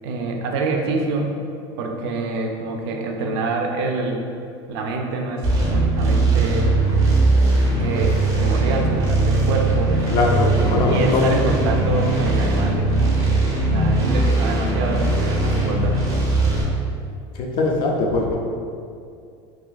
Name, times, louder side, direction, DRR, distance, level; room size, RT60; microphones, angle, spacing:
voice 1, 0.0-1.4 1.8-4.3 4.7-6.7 7.8-10.1 10.9-12.9 13.7-16.0, right 3 dB, 75° right, 2 dB, 0.5 m, -26 dB
sound 1, 5.4-16.6, right 2 dB, 25° right, 0.6 m, -19 dB
voice 2, 10.1-11.2 17.4-18.4, left 3 dB, 35° left, 0 dB, 0.4 m, -21 dB
2.7 x 2.4 x 3.8 m, 2.3 s
cardioid pair, 165°, 13 cm